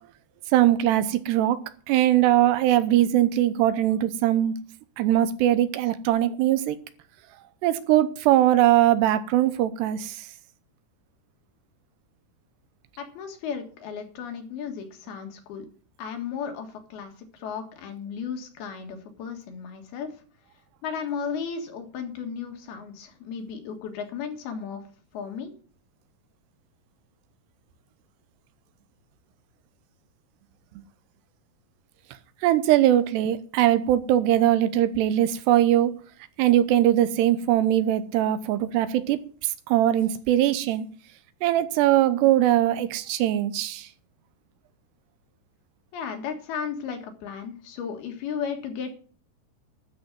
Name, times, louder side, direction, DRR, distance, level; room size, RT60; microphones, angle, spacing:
voice 1, 0.5-1.6 1.9-4.5 5.0-6.8 7.6-10.2 32.4-36.0 36.4-39.2 39.7-40.9 41.4-43.9, right 13 dB, 85° right, 3.0 m, -21 dB
voice 2, 13.0-15.7 16.0-20.1 20.8-24.8 25.1-25.5 45.9-49.0, left 6 dB, 70° left, 3.6 m, -34 dB
12.5 x 5.4 x 8.8 m
omnidirectional pair, 4.7 m